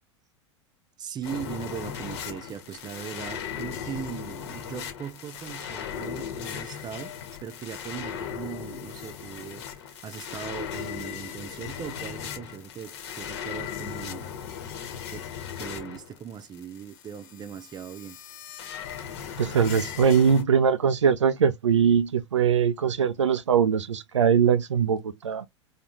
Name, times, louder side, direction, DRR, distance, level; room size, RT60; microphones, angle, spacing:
voice 1, 1.0-14.2 15.1-15.3 15.6-18.2, right 8 dB, 30° right, 0.7 m, -39 dB
sound 1, 1.2-20.4, left 8 dB, 65° left, 1.2 m, -37 dB
voice 2, 19.4-25.5, right 7 dB, 85° right, 0.5 m, -22 dB
4.0 x 2.9 x 3.0 m
hypercardioid pair, 90°, 15 cm